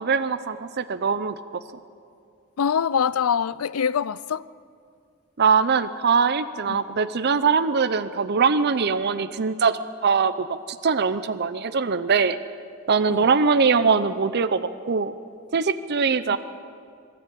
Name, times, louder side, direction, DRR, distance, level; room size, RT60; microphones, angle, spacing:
voice 1, 0.0-1.6 5.4-10.5 10.8-12.4 12.9-15.1 15.5-16.4, right 5 dB, 50° right, 0.6 m, -22 dB
voice 2, 2.6-4.5 6.7-6.8 13.1-13.3 16.3-16.4, left 7 dB, 80° left, 0.5 m, -24 dB
23.5 x 13.5 x 8.4 m
head